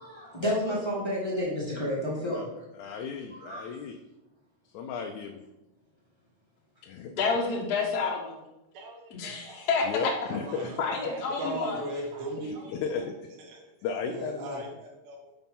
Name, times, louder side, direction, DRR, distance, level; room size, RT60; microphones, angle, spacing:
voice 1, 0.0-2.9 3.3-3.7, equal, 20° left, -5 dB, 0.8 m, -31 dB
voice 2, 2.7-4.0 4.7-5.4 6.9-7.1 9.8-10.7 12.7-13.1 13.8-14.7, left 6 dB, 80° left, 3 dB, 1.9 m, -34 dB
voice 3, 7.2-8.4 9.1-10.1 10.8-11.8 12.4-12.5, left 4 dB, 50° left, 0 dB, 1.1 m, -29 dB
voice 4, 8.7-9.7 10.3-10.8 11.0-13.0 13.5-13.6 14.1-15.3, right 1 dB, 55° right, -1 dB, 1.6 m, -38 dB
5.8 x 4.9 x 5.3 m, 0.93 s
omnidirectional pair, 3.4 m